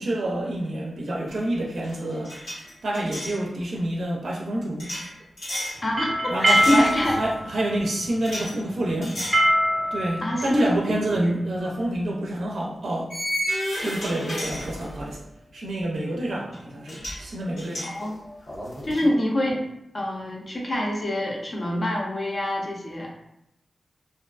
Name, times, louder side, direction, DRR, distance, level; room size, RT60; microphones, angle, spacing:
voice 1, 0.0-2.4 2.8-5.0 6.3-9.2 9.9-13.1 13.8-15.2 15.5-17.9 19.0-19.1, right 1 dB, 80° right, -2 dB, 0.4 m, -28 dB
sound 1, 1.3-1.5 1.8-3.4 4.8-5.8 6.5-7.3 8.2-8.5 9.0-9.5 9.9-10.1 11.6-11.7 13.1-15.2 16.5-16.6 16.9-17.2 17.6-19.0, equal, 90° left, 1.0 m, -32 dB
voice 2, 5.8-7.2 10.2-10.7 11.1-11.3 17.8-18.2 18.8-19.7 19.9-23.1, left 1 dB, 40° left, -2 dB, 0.5 m, -25 dB
sound 2, 5.8-11.5, equal, 20° right, 0.5 m, -24 dB
2.4 x 2.3 x 2.3 m, 0.83 s
wide cardioid pair, 140°, 0 cm